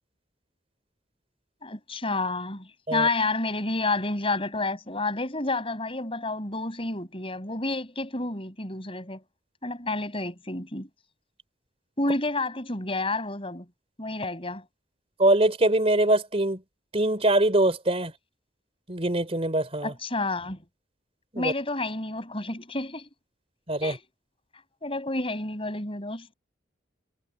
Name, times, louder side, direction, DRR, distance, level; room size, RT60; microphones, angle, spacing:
voice 1, 1.6-9.2 9.6-10.9 12.0-13.7 14.0-14.6 19.8-20.6 21.4-23.1 23.8-24.0 24.8-26.3, left 2 dB, 30° left, 6.8 m, -30 dB
voice 2, 15.2-16.6 16.9-18.1 18.9-19.9 21.3-21.5 23.7-24.0, right 1 dB, 35° right, 3.8 m, -23 dB
head